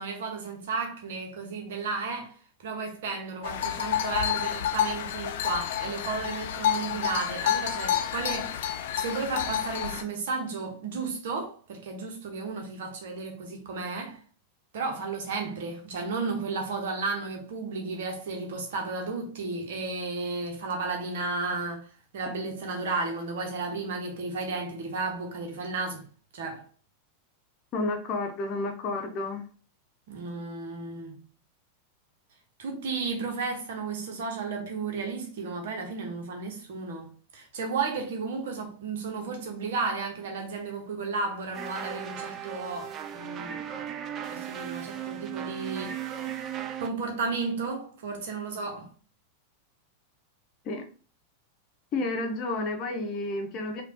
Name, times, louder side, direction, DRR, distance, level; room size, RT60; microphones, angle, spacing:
voice 1, 0.0-2.3 2.6-14.2 14.7-21.9 22.1-26.0 26.3-26.7 30.1-31.2 32.6-43.8 44.3-46.2 46.8-48.9, right 4 dB, 55° right, 1.2 m, -33 dB
sound 1, 3.4-10.0, left 10 dB, 55° left, 0.4 m, -29 dB
voice 2, 27.7-29.4 50.6-50.8 51.9-53.8, left 2 dB, 35° left, 0.9 m, -31 dB
sound 2, 41.5-46.9, right 10 dB, 30° right, 0.5 m, -36 dB
5.1 x 2.5 x 2.9 m
figure-of-eight pair, 90°, 0 cm